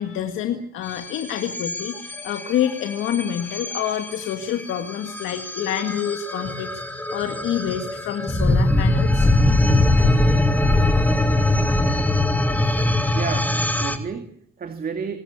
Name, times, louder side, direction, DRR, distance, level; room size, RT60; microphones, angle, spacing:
voice 1, 0.0-9.3, left 9 dB, 90° left, 6 dB, 2.0 m, -27 dB
sound 1, 0.9-14.0, left 1 dB, 10° left, 2.9 m, -22 dB
voice 2, 13.1-15.2, right 6 dB, 50° right, 7 dB, 2.4 m, -31 dB
26.0 x 13.5 x 9.7 m, 0.66 s
cardioid pair, 90°, 20 cm